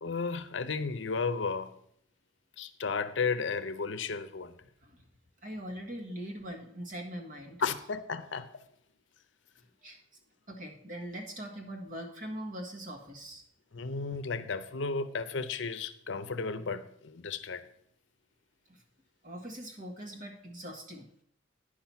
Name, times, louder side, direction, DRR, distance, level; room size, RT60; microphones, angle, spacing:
voice 1, 0.0-1.7 2.6-4.6 7.6-8.6 13.7-17.7, left 4 dB, 75° left, 0.7 m, -34 dB
voice 2, 5.4-7.6 9.8-10.0 10.5-13.4 18.7-18.8 19.2-21.1, equal, 45° right, 1.7 m, -42 dB
10.0 x 5.9 x 5.8 m
head